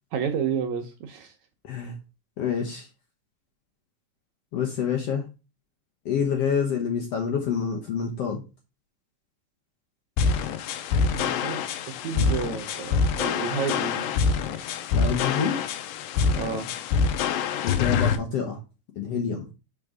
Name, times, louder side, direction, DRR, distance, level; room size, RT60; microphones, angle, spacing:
voice 1, 0.1-1.4 11.1-14.1 16.3-16.7 18.0-18.2, right 7 dB, 75° right, 1.8 m, -31 dB
voice 2, 1.6-1.9 2.4-2.9 4.5-5.2 6.0-8.4 12.1-12.3 14.9-15.6 17.6-18.6 19.0-19.5, left 7 dB, 65° left, 1.5 m, -27 dB
sound 1, 10.2-18.2, left 5 dB, 85° left, 2.5 m, -25 dB
6.6 x 5.1 x 3.5 m
omnidirectional pair, 4.0 m